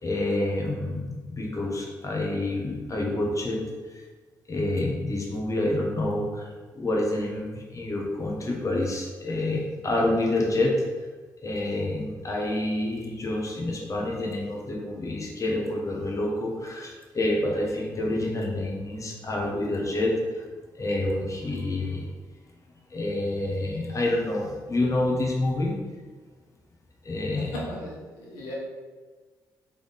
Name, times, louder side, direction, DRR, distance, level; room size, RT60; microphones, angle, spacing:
voice 1, 0.0-3.6 4.5-6.5 6.7-10.7 11.4-20.4 20.7-22.1 22.9-25.7 27.0-27.5, left 1 dB, 30° left, -2 dB, 1.2 m, -28 dB
voice 2, 27.4-28.5, left 1 dB, 80° left, -4 dB, 1.0 m, -37 dB
3.5 x 3.5 x 3.9 m, 1.4 s
hypercardioid pair, 40°, 10 cm